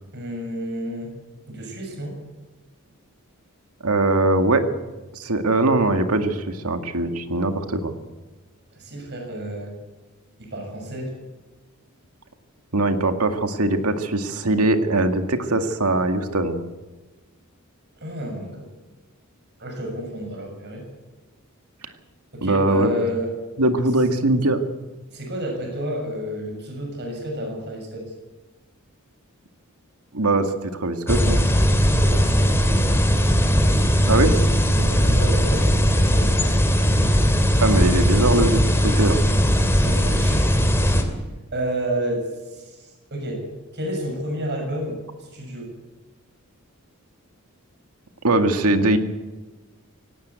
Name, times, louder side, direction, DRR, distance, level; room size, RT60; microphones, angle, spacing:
voice 1, 0.1-1.1 1.5-2.2 8.7-9.8 10.4-11.2 18.0-18.7 19.6-20.8 22.3-23.3 25.1-28.0 32.0-32.7 33.6-36.5 39.6-40.5 41.5-43.5 43.7-45.7, equal, 50° right, 2 dB, 6.6 m, -31 dB
voice 2, 3.8-4.6 5.1-7.9 12.7-16.6 22.4-22.9 23.6-24.6 30.1-30.5 30.8-31.4 34.1-34.3 37.6-39.2 48.2-49.0, right 2 dB, 85° right, 7 dB, 2.1 m, -21 dB
sound 1, 31.1-41.0, equal, 10° left, 2.6 m, -18 dB
18.0 x 18.0 x 8.2 m, 1.2 s
head